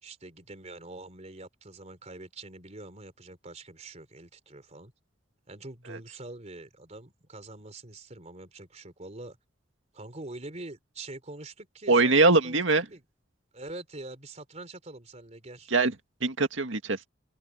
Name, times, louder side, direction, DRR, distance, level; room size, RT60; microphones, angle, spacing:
voice 1, 0.0-4.9 5.5-9.4 9.9-12.6 12.9-13.0 13.5-15.7, right 2 dB, 35° right, 3.5 m, -44 dB
voice 2, 11.9-12.9 15.7-17.1, right 3 dB, 90° right, 2.0 m, -22 dB
open air
head